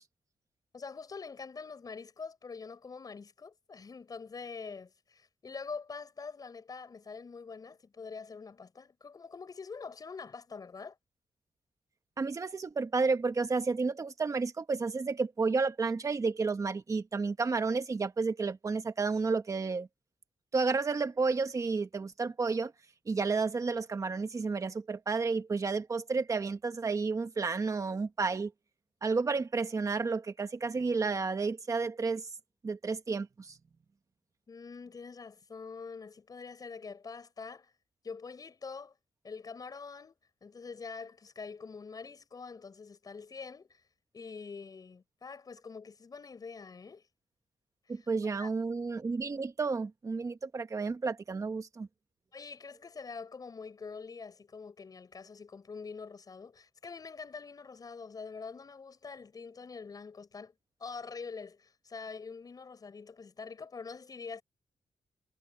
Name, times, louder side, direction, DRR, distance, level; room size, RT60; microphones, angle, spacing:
voice 1, 0.7-11.0 34.5-37.7 38.0-38.9 39.2-40.2 40.4-43.8 44.1-47.0 47.9-48.1 48.4-48.5 52.3-60.5 60.8-64.4, left 5 dB, 35° left, 7.8 m, -45 dB
voice 2, 12.2-19.9 20.5-22.7 23.1-28.5 29.0-32.3 32.6-33.5 47.9-51.9, right 4 dB, 30° right, 1.5 m, -31 dB
wide cardioid pair, 180°, 11 cm